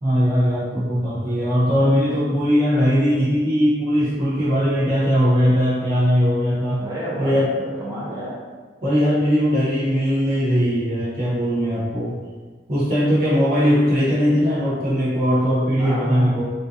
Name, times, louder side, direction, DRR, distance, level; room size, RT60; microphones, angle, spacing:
voice 1, 0.0-6.8 7.2-7.5 8.8-12.2 12.7-16.5, equal, 50° right, -9 dB, 0.9 m, -19 dB
voice 2, 6.8-8.4 15.8-16.5, right 1 dB, 20° right, -8 dB, 0.8 m, -30 dB
3.5 x 2.6 x 2.6 m, 1.4 s
head